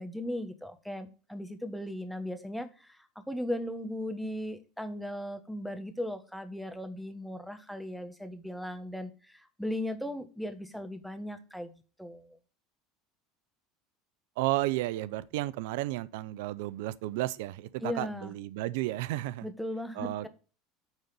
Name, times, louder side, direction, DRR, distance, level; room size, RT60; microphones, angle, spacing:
voice 1, 0.0-11.7 12.0-12.4 17.8-18.3 19.4-20.3, left 1 dB, ahead, 1.3 m, -37 dB
voice 2, 14.4-19.5 19.9-20.3, right 17 dB, 75° right, 0.4 m, -32 dB
9.0 x 4.0 x 6.8 m
supercardioid pair, 95°, 0 cm